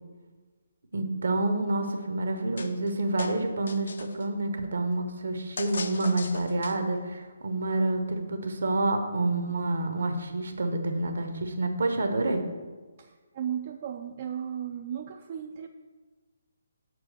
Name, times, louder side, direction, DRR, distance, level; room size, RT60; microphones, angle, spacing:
voice 1, 0.9-12.4, right 2 dB, 60° right, 6 dB, 0.9 m, -28 dB
sound 1, 2.6-2.9 3.2-4.3 5.6-7.0, left 4 dB, 60° left, 0.5 m, -38 dB
voice 2, 13.0-15.7, right 9 dB, 40° right, 5 dB, 0.4 m, -35 dB
6.1 x 4.7 x 6.4 m, 1.3 s
figure-of-eight pair, 140°, 0 cm